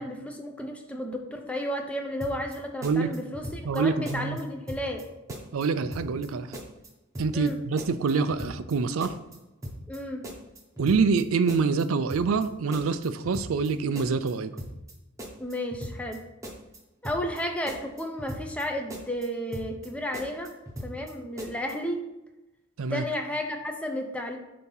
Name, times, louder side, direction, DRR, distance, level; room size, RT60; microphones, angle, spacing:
voice 1, 0.0-5.0 7.3-7.6 9.9-10.2 15.4-16.2 17.0-20.5 20.8-22.0 22.9-24.4, equal, 5° left, 3 dB, 0.6 m, -32 dB
sound 1, 2.2-2.6 2.8-3.8 4.1-4.4 4.7-5.0 5.3-6.3 6.5-6.9 7.1-7.5 7.8-8.7 9.0-9.4 9.6-10.0 10.2-11.2 11.5-11.8 12.1-12.5 12.7-13.7 14.0-14.3 14.6-14.9 15.2-16.2 16.4-16.8 17.0-17.4 17.7-18.6 18.9-19.3 19.5-19.9 20.1-21.1 21.4-21.7, equal, 15° right, 0.9 m, -39 dB
voice 2, 3.6-4.4 5.5-6.6 7.2-9.1 10.8-14.5 22.8-23.0, right 4 dB, 90° right, 12 dB, 0.4 m, -26 dB
8.0 x 2.9 x 5.5 m, 0.97 s
head